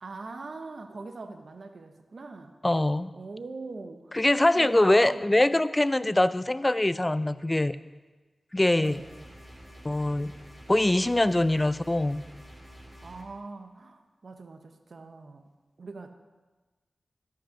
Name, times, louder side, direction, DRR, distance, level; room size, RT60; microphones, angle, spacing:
voice 1, 0.0-2.5 3.1-4.1 4.5-5.3 8.8-9.3 13.0-15.5 15.8-16.1, right 3 dB, 70° right, 7 dB, 0.7 m, -42 dB
voice 2, 2.6-3.1 4.1-7.8 8.5-9.0 9.8-10.3 10.7-12.2, left 1 dB, 25° left, 15 dB, 0.4 m, -23 dB
sound 1, 8.8-13.2, equal, 10° right, 2.2 m, -48 dB
13.0 x 5.5 x 5.0 m, 1.3 s
cardioid pair, 45°, 0 cm